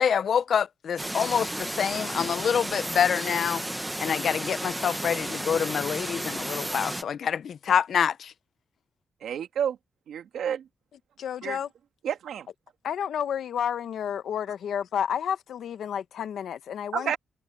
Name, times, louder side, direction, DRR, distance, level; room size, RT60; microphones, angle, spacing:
voice 1, 0.0-3.6 4.0-8.3, left 7 dB, 60° left, 0.5 m, -26 dB
sound 1, 1.0-7.0, right 1 dB, 10° right, 0.7 m, -33 dB
voice 2, 9.2-9.8 10.1-10.7 11.4-11.6 12.0-12.5 16.9-17.2, right 9 dB, 85° right, 2.3 m, -30 dB
voice 3, 11.2-11.7 12.8-17.2, left 8 dB, 75° left, 1.1 m, -30 dB
wide cardioid pair, 150°, 0 cm